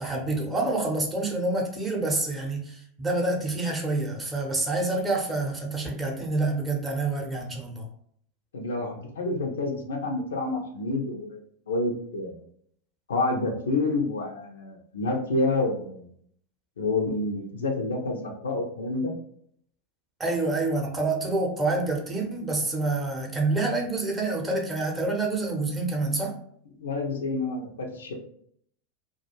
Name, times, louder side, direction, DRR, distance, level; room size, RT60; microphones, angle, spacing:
voice 1, 0.0-7.9 20.2-26.3, right 2 dB, 15° right, 1 dB, 0.7 m, -27 dB
voice 2, 8.5-11.4 11.7-12.4 13.1-16.1 16.8-19.1 26.8-28.1, left 2 dB, 70° left, 2 dB, 0.5 m, -28 dB
2.3 x 2.2 x 2.9 m, 0.64 s
figure-of-eight pair, 90°, 0 cm